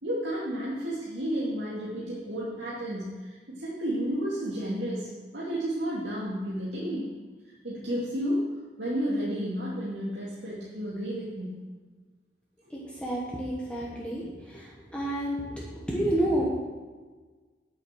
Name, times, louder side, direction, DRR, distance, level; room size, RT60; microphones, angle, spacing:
voice 1, 0.0-7.1 7.6-8.4 8.8-11.6 12.7-12.8, equal, 75° right, -8 dB, 2.7 m, -32 dB
voice 2, 12.7-16.5, right 1 dB, 5° left, -4 dB, 1.3 m, -30 dB
9.8 x 8.1 x 6.3 m, 1.4 s
head